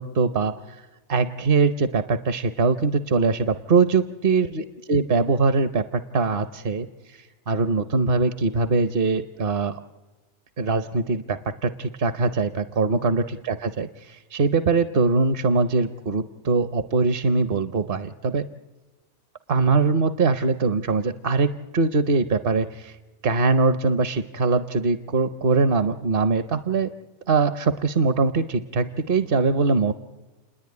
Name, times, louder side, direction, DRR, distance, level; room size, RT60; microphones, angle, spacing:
voice 1, 0.0-9.8 10.6-18.4 19.5-23.0 23.2-26.9 27.3-29.9, right 4 dB, 55° right, 10 dB, 1.0 m, -22 dB
30.0 x 10.5 x 9.4 m, 1.2 s
omnidirectional pair, 1.2 m